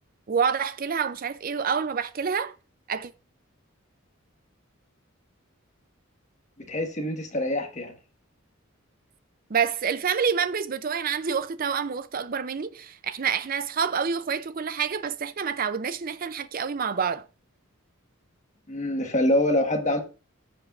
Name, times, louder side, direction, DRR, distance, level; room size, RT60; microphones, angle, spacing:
voice 1, 0.3-2.5 2.9-3.1 9.5-17.2, right 6 dB, 45° right, 0.5 m, -27 dB
voice 2, 6.6-7.9 18.7-20.0, left 1 dB, 35° left, 1.5 m, -25 dB
14.5 x 5.5 x 2.5 m
head